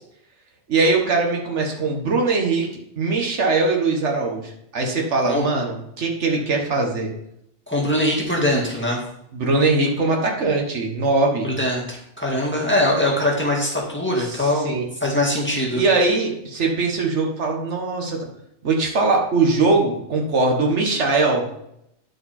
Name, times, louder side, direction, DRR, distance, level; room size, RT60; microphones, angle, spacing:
voice 1, 0.7-2.7 3.0-7.1 9.3-11.5 14.2-14.8 15.7-18.3 18.6-21.4, right 3 dB, 75° right, 1 dB, 1.7 m, -21 dB
voice 2, 7.7-9.0 11.4-14.7 15.0-15.8, left 1 dB, 10° left, -3 dB, 1.9 m, -22 dB
9.8 x 4.7 x 4.3 m, 0.78 s
omnidirectional pair, 1.2 m